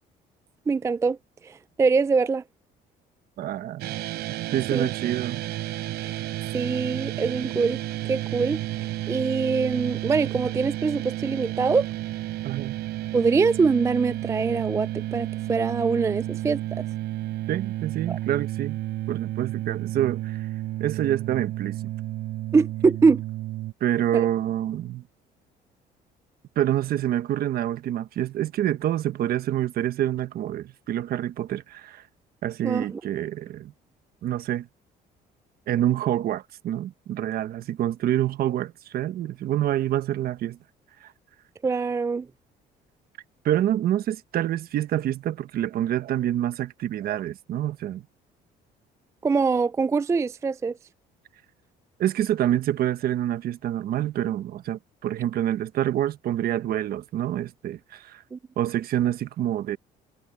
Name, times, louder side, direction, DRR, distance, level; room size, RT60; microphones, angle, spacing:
voice 1, 0.7-1.2 1.4-2.4 4.7-4.9 6.0-6.2 6.5-7.8 8.1-11.9 13.1-16.8 18.1-18.2 22.5-23.2 24.1-24.3 32.6-33.0 41.6-42.3 49.2-50.7 58.3-58.4, right 4 dB, 15° right, 0.3 m, -24 dB
voice 2, 3.4-3.9 4.5-5.4 12.4-12.8 17.5-18.8 19.1-20.5 20.8-21.8 23.8-25.0 26.6-32.0 32.4-33.7 34.2-34.7 35.7-40.6 41.0-41.1 43.4-48.0 52.0-58.2 58.6-59.8, right 12 dB, 65° right, 1.2 m, -27 dB
sound 1, 3.8-23.7, right 15 dB, 80° right, 3.8 m, -32 dB
cardioid pair, 110°, 17 cm